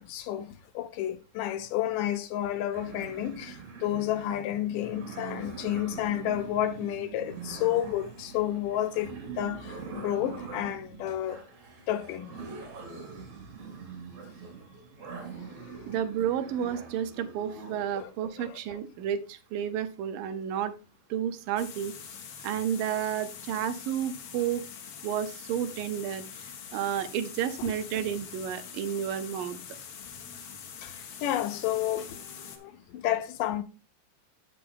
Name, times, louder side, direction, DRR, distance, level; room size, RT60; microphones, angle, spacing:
voice 1, 0.0-11.4 11.9-12.3 15.4-15.7 17.9-18.1 18.4-18.6 27.6-27.7 30.8-33.6, left 12 dB, 80° left, 2.4 m, -31 dB
sound 1, 2.7-18.1, right 5 dB, 60° right, 4.0 m, -43 dB
voice 2, 15.9-20.8 21.1-21.9 22.4-24.6 25.0-26.2 26.7-29.6, right 9 dB, 85° right, 2.5 m, -31 dB
sound 2, 21.6-32.6, left 7 dB, 60° left, 1.7 m, -44 dB
7.8 x 6.7 x 3.7 m
omnidirectional pair, 3.9 m